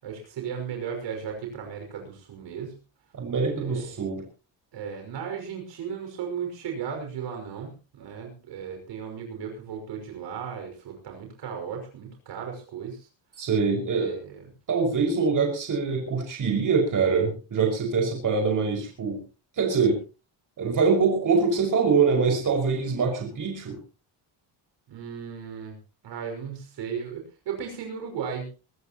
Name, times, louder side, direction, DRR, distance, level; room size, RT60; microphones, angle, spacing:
voice 1, 0.0-2.8 3.6-4.0 4.7-13.1 13.9-14.4 24.9-25.8 26.0-28.5, right 7 dB, 70° right, 3 dB, 5.8 m, -36 dB
voice 2, 3.2-4.3 13.4-14.2 14.7-19.2 19.6-20.0 20.6-23.8, right 5 dB, 45° right, 2 dB, 5.8 m, -24 dB
24.0 x 14.5 x 3.0 m, 0.33 s
cardioid pair, 140°, 44 cm